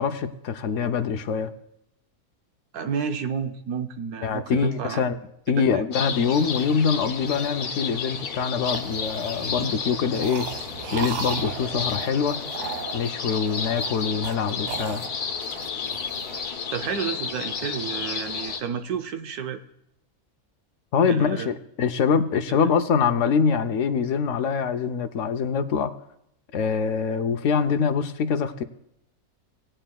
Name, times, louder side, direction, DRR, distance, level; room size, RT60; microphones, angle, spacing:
voice 1, 0.0-1.5 4.2-5.2 5.5-10.5 10.9-12.4 12.9-15.0 20.9-25.9 26.5-28.6, left 6 dB, 65° left, 8 dB, 0.9 m, -24 dB
voice 2, 2.7-5.1 5.5-5.8 16.7-19.6 21.1-21.5 22.5-22.6, right 7 dB, 75° right, 8 dB, 1.2 m, -31 dB
sound 1, 5.9-18.6, left 6 dB, 80° left, 1.5 m, -32 dB
sound 2, 6.3-8.2 8.6-16.5, right 7 dB, 60° right, 0.9 m, -37 dB
19.0 x 8.8 x 2.3 m, 0.79 s
omnidirectional pair, 1.6 m